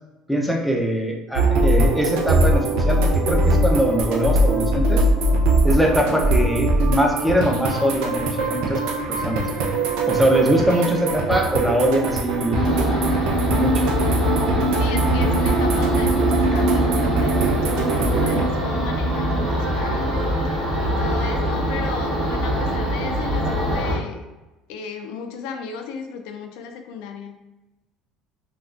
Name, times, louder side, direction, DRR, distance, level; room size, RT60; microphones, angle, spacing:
voice 1, 0.3-5.0 5.6-8.8 9.1-9.4 10.1-12.6 13.5-13.9, equal, ahead, 0 dB, 0.6 m, -22 dB
sound 1, 1.3-18.4, right 2 dB, 75° right, 0.5 m, -22 dB
sound 2, 12.5-24.0, right 1 dB, 40° right, 1.1 m, -22 dB
voice 2, 14.7-24.2 24.7-27.4, left 5 dB, 75° left, 5 dB, 0.4 m, -34 dB
3.5 x 2.3 x 2.4 m, 1.0 s
supercardioid pair, 100°, 0 cm